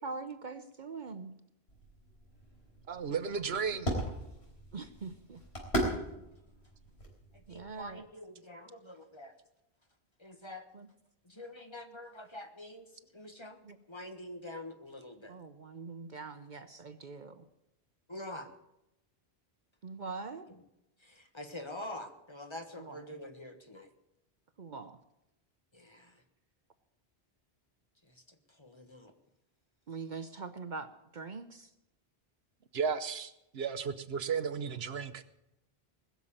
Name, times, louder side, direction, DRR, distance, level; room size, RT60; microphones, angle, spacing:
voice 1, 0.0-1.3 3.5-3.8 4.7-5.4 7.5-8.1 10.7-10.9 13.6-13.8 15.3-17.4 19.8-20.5 22.8-23.0 24.6-25.0 29.9-31.7, right 4 dB, 50° right, 11 dB, 0.8 m, -43 dB
sound 1, 1.7-8.0, right 1 dB, 90° left, 4.1 m, -39 dB
voice 2, 2.9-3.9 32.7-35.2, right 6 dB, 75° right, 12 dB, 1.1 m, -34 dB
voice 3, 7.3-9.3 10.2-10.7 11.2-13.6 13.9-15.4 18.1-18.5 20.5-20.6 21.0-23.9 25.7-26.2 28.1-29.1, left 1 dB, 25° left, 6 dB, 1.4 m, -46 dB
20.0 x 7.1 x 8.8 m, 0.87 s
omnidirectional pair, 1.1 m